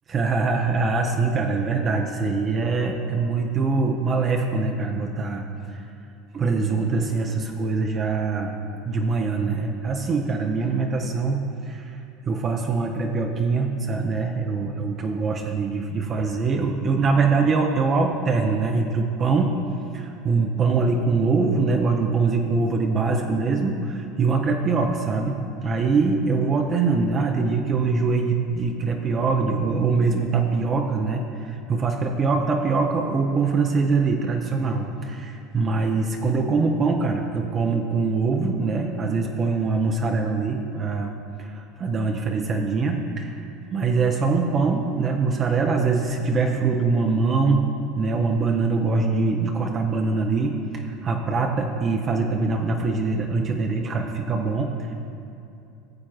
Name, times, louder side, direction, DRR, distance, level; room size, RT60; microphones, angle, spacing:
voice 1, 0.1-5.5 6.3-8.5 8.9-12.0 12.3-19.5 19.9-41.1 41.4-43.3 43.7-47.7 48.0-54.9, right 4 dB, 35° right, 2 dB, 0.7 m, -23 dB
14.5 x 7.4 x 2.4 m, 2.6 s
supercardioid pair, 100°, 0 cm